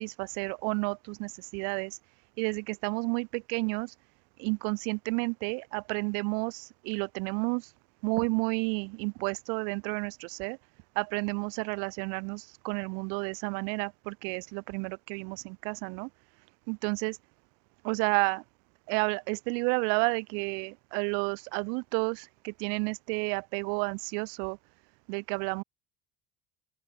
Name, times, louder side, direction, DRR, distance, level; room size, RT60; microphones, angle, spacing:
voice 1, 0.0-2.0 2.4-3.9 4.4-7.7 8.0-10.6 11.0-16.1 16.7-17.2 17.8-18.4 18.9-24.6 25.1-25.6, right 40 dB or more, 75° right, 0.9 m, -31 dB
open air
cardioid pair, 140°, 19 cm